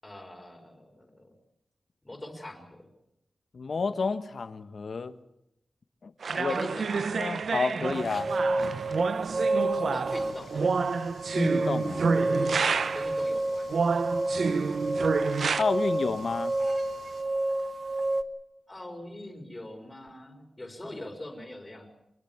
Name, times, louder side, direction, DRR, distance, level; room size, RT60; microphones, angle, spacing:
voice 1, 0.0-1.3 2.0-2.9 6.3-7.1 9.9-10.5 12.9-13.7 18.7-21.9, left 1 dB, 15° left, 4 dB, 4.8 m, -42 dB
voice 2, 3.5-5.1 6.0-6.6 7.2-8.3 11.3-12.1 15.6-16.6, left 4 dB, 55° left, 11 dB, 1.4 m, -30 dB
sound 1, 6.2-13.2 13.7-15.6, right 5 dB, 70° right, 0.8 m, -28 dB
sound 2, 7.9-18.2, right 2 dB, 40° right, 1.4 m, -30 dB
sound 3, 10.1-17.2, left 4 dB, 80° left, 4.0 m, -54 dB
24.5 x 20.5 x 7.2 m, 0.83 s
wide cardioid pair, 130°, 0 cm